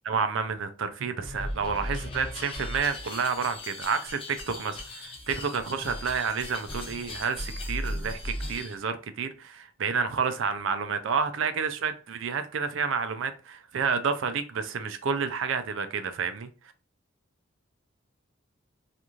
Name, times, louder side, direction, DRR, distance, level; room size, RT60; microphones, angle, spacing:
voice 1, 0.1-16.5, right 5 dB, 70° right, 0.4 m, -30 dB
sound 1, 1.2-8.7, left 1 dB, 25° left, 0.6 m, -37 dB
3.0 x 2.5 x 2.4 m
head